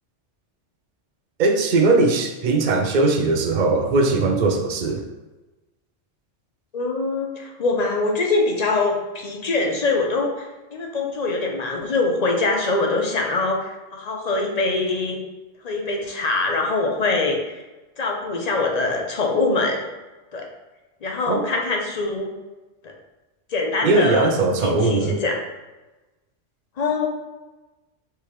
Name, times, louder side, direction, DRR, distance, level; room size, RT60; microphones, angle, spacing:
voice 1, 1.4-5.0 21.3-21.4 23.8-25.2, right 3 dB, 55° right, 4 dB, 0.5 m, -19 dB
voice 2, 6.7-15.2 15.6-17.6 18.0-19.8 20.3-20.4 21.0-22.3 23.5-24.3 24.6-25.4 26.8-27.1, left 3 dB, 45° left, 1 dB, 0.6 m, -23 dB
4.5 x 3.5 x 3.0 m, 1.1 s
omnidirectional pair, 1.2 m